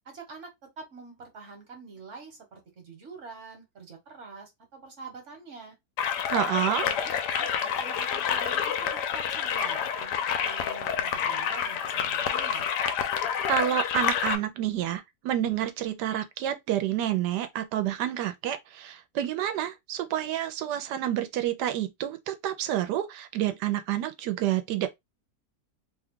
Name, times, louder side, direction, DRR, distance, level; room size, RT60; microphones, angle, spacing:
voice 1, 0.0-0.5 0.8-5.8 6.5-7.5 7.8-12.7, right 4 dB, 50° right, 1.3 m, -46 dB
sound 1, 6.0-14.4, left 8 dB, 90° left, 1.2 m, -28 dB
voice 2, 6.3-6.8 13.5-24.9, right 11 dB, 85° right, 1.2 m, -29 dB
3.0 x 2.3 x 3.6 m
omnidirectional pair, 1.8 m